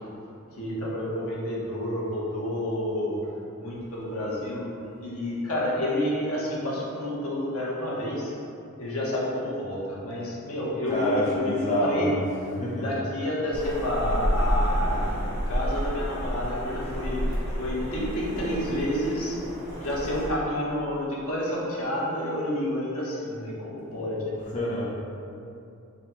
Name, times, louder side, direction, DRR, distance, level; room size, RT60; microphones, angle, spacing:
voice 1, 0.5-3.2 3.6-4.7 5.0-8.3 8.8-12.1 12.7-15.1 15.5-17.2 17.6-19.4 19.8-24.3, left 1 dB, 90° left, -6 dB, 1.1 m, -29 dB
voice 2, 10.9-12.2 12.6-12.9 24.5-24.9, equal, 35° left, -6 dB, 0.6 m, -27 dB
sound 1, 13.5-20.3, equal, 65° left, 1.4 m, -29 dB
4.0 x 2.9 x 4.4 m, 2.7 s
head